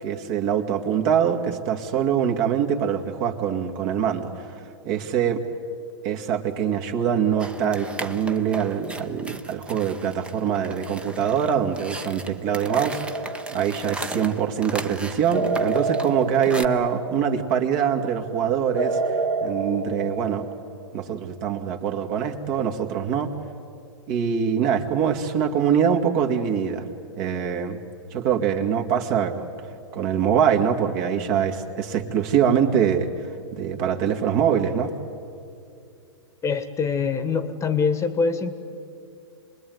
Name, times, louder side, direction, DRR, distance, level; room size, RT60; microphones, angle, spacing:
voice 1, 0.0-4.5 4.8-5.4 6.0-13.3 13.5-19.2 19.4-20.5 20.9-23.3 24.1-26.9 27.2-27.8 28.1-29.5 29.9-34.9, right 8 dB, 45° right, 4 dB, 2.3 m, -24 dB
sound 1, 7.4-16.7, right 2 dB, 5° right, 1.0 m, -37 dB
sound 2, 12.7-14.0 15.3-17.5 18.8-20.9, right 3 dB, 85° right, 2.5 m, -28 dB
voice 2, 36.4-38.5, left 5 dB, 20° left, 12 dB, 1.3 m, -24 dB
27.0 x 21.0 x 9.5 m, 2.5 s
hypercardioid pair, 120°, 15 cm